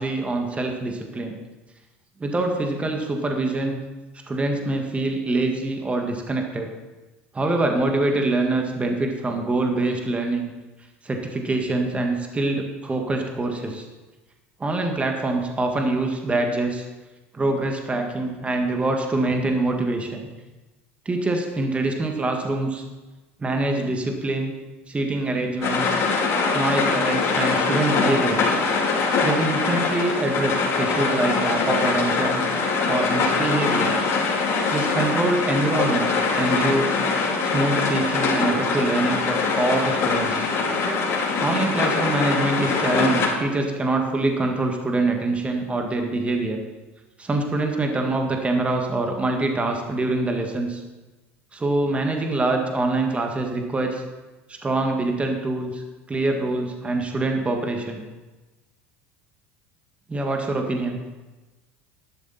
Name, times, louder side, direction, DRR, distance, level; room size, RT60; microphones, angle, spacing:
voice 1, 0.0-1.3 2.2-3.8 4.3-6.7 7.3-10.5 11.0-13.8 14.6-16.9 17.3-20.3 21.1-22.8 23.4-24.5 24.9-25.9 26.5-28.4 29.2-32.4 32.9-33.9 34.7-37.0 37.4-40.5 41.4-46.6 47.2-50.8 51.5-54.0 54.5-58.0 60.1-61.0, right 2 dB, 20° right, 3 dB, 1.7 m, -24 dB
sound 1, 25.6-43.3, left 4 dB, 45° left, 3.3 m, -23 dB
11.5 x 11.5 x 4.2 m, 1.2 s
hypercardioid pair, 80°, 7 cm